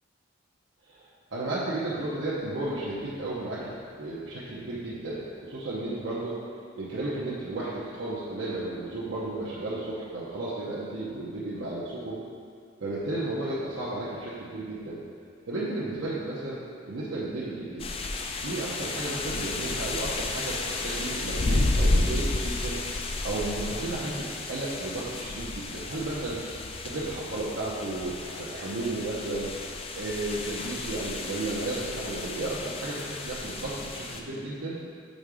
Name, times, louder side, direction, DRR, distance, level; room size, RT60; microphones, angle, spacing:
voice 1, 0.9-6.4 6.8-12.2 12.8-15.0 15.5-17.8 18.4-22.8 23.2-26.4 26.8-29.5 30.0-34.8, right 2 dB, 75° right, -8 dB, 0.8 m, -33 dB
sound 1, 17.8-34.2, left 2 dB, 30° left, 0.3 m, -32 dB
5.3 x 3.6 x 4.8 m, 2.2 s
head